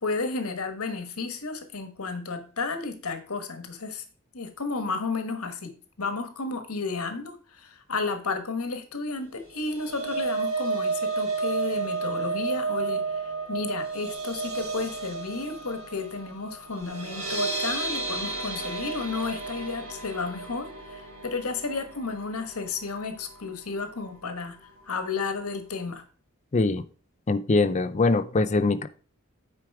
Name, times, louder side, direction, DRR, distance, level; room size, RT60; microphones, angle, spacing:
voice 1, 0.0-4.0 4.3-5.7 6.0-26.0, left 4 dB, 90° left, 8 dB, 1.3 m, -32 dB
sound 1, 9.4-23.7 24.0-24.3 24.6-24.7, right 4 dB, 75° right, 2.9 m, -32 dB
voice 2, 26.5-26.8 27.3-28.9, left 3 dB, 30° left, 14 dB, 0.5 m, -23 dB
9.2 x 5.0 x 4.7 m, 0.39 s
head